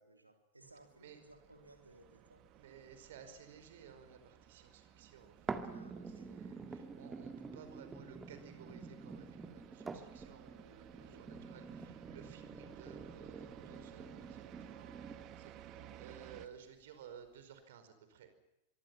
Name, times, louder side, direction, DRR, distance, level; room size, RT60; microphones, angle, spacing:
voice 1, 0.0-2.5 5.7-6.3 11.0-11.3 15.7-16.0 16.5-16.7, right 2 dB, 85° right, 5 dB, 3.6 m, -61 dB
sound 1, 0.6-16.5, right 11 dB, 35° right, 1.9 m, -57 dB
voice 2, 2.5-18.3, right 7 dB, 55° right, 9 dB, 5.1 m, -57 dB
sound 2, 5.5-15.5 16.0-16.1, right 4 dB, 15° right, 2.1 m, -47 dB
24.5 x 24.5 x 5.8 m, 0.91 s
figure-of-eight pair, 90°, 0 cm